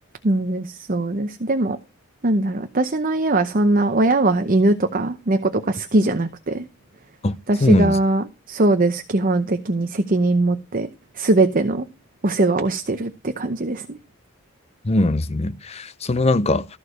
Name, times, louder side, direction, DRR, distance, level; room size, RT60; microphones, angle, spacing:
voice 1, 0.2-1.8 2.2-6.6 7.5-10.9 11.2-11.9 12.2-14.0, right 2 dB, 40° right, 0.8 m, -21 dB
voice 2, 7.2-8.0 14.8-16.7, left 2 dB, 30° left, 0.5 m, -21 dB
14.0 x 4.7 x 6.4 m
head